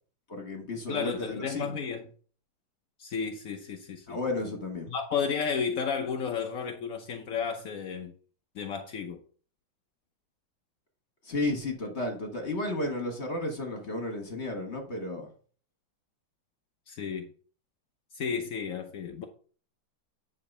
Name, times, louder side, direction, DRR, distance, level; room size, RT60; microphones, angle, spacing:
voice 1, 0.3-1.7 4.1-4.9 11.2-15.3, left 2 dB, 35° left, 1.5 m, -33 dB
voice 2, 0.9-2.1 3.0-4.2 4.9-8.1 8.5-9.2 16.9-17.3 18.1-19.2, left 6 dB, 70° left, 0.7 m, -32 dB
9.7 x 3.9 x 5.3 m
omnidirectional pair, 2.4 m